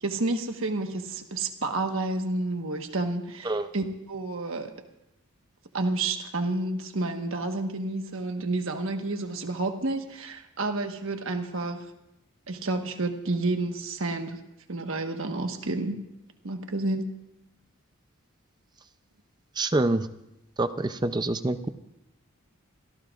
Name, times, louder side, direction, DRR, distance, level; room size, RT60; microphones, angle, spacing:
voice 1, 0.0-4.7 5.7-11.9 12.5-14.4 14.7-16.0 16.4-17.1, right 2 dB, 65° right, 5 dB, 1.3 m, -30 dB
voice 2, 19.6-20.1 20.6-21.7, right 2 dB, 20° right, 10 dB, 0.5 m, -26 dB
27.0 x 17.5 x 2.5 m, 0.90 s
head